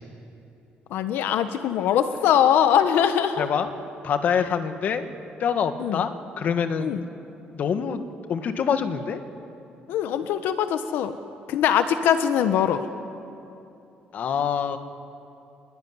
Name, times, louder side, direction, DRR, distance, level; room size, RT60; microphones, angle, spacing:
voice 1, 0.9-3.5 4.4-4.5 5.8-6.1 6.8-7.0 9.9-11.2 11.5-12.9, left 9 dB, 80° left, 9 dB, 1.2 m, -22 dB
voice 2, 3.4-3.7 4.0-5.1 5.4-7.0 7.5-8.0 8.3-9.2 14.1-14.8, left 7 dB, 50° left, 8 dB, 1.6 m, -25 dB
27.0 x 22.0 x 9.8 m, 2.8 s
cardioid pair, 150°, 4 cm